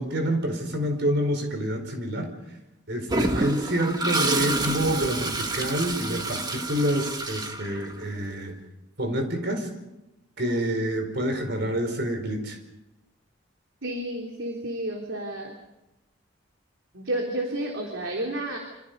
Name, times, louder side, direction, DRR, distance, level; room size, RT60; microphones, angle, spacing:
voice 1, 0.0-2.3 2.9-8.5 9.0-9.7 10.4-12.6, right 1 dB, 55° right, 5 dB, 4.7 m, -27 dB
Toilet flush, 3.1-8.2, right 2 dB, 20° right, 1.6 m, -28 dB
voice 2, 13.8-15.5 16.9-18.6, right 1 dB, 85° right, 1 dB, 3.5 m, -31 dB
27.0 x 26.5 x 5.4 m, 0.96 s
head